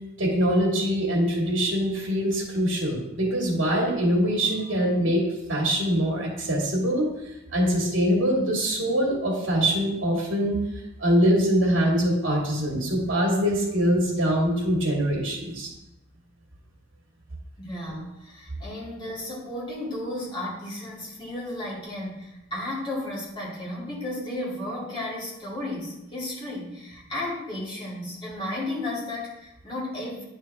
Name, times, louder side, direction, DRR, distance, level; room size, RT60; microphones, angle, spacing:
voice 1, 0.2-5.2 5.5-7.1 7.5-10.6 11.0-15.7, equal, 70° right, -2 dB, 2.3 m, -23 dB
voice 2, 17.6-30.2, left 1 dB, 25° left, -6 dB, 2.5 m, -34 dB
9.7 x 4.5 x 3.5 m, 0.88 s
head